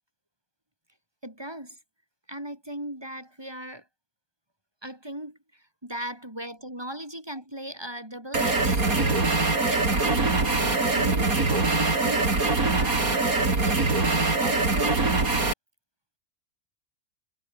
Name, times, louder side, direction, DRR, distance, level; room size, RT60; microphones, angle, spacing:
voice 1, 1.2-1.8 2.3-3.8 4.8-9.4 9.7-12.3 12.7-15.0, right 1 dB, 15° right, 6.6 m, -38 dB
sound 1, 8.3-15.5, right 3 dB, 70° right, 4.5 m, -23 dB
omnidirectional pair, 1.6 m